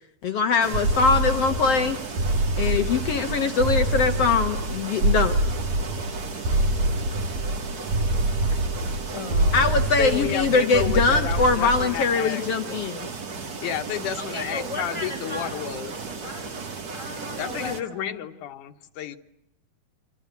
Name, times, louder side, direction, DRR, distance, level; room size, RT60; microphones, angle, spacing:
voice 1, 0.2-2.0 2.6-5.4 9.5-13.1, left 4 dB, 60° left, 7 dB, 2.0 m, -22 dB
sound 1, 0.6-17.8, right 4 dB, 35° right, 1.9 m, -35 dB
sound 2, 0.7-12.1, right 1 dB, 75° right, 3.0 m, -25 dB
voice 2, 9.1-10.6 14.2-15.8 16.1-16.6 16.9-18.3, left 1 dB, 10° left, 2 dB, 6.1 m, -36 dB
voice 3, 10.0-12.4 13.6-15.9 17.4-19.2, left 10 dB, 90° left, 8 dB, 2.8 m, -31 dB
28.0 x 25.0 x 8.3 m, 0.81 s
omnidirectional pair, 3.4 m